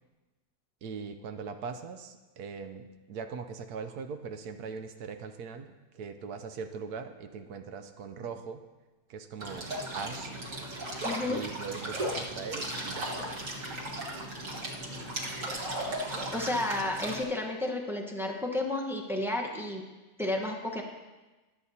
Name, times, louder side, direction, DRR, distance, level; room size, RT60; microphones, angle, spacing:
voice 1, 0.8-8.6 9.1-10.4 11.2-13.1, right 5 dB, 65° right, 8 dB, 1.0 m, -40 dB
sound 1, 9.4-17.2, right 1 dB, 45° right, 1.8 m, -36 dB
voice 2, 11.0-11.4 16.3-19.8 20.2-20.8, left 1 dB, 5° right, 0 dB, 0.5 m, -32 dB
23.5 x 8.1 x 2.8 m, 1.2 s
omnidirectional pair, 2.0 m